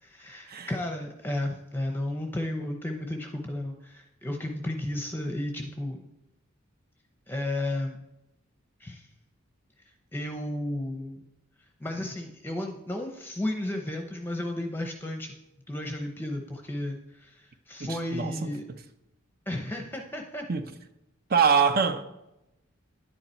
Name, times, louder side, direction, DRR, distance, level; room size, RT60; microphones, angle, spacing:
voice 1, 0.0-6.0 7.3-8.0 8.8-9.1 10.1-11.2 11.8-15.3 15.7-18.6 19.5-20.5, left 1 dB, 10° left, 0.7 m, -33 dB
voice 2, 17.8-18.5 20.5-20.7 21.3-22.0, right 6 dB, 45° right, 0.7 m, -24 dB
10.5 x 9.6 x 4.4 m
head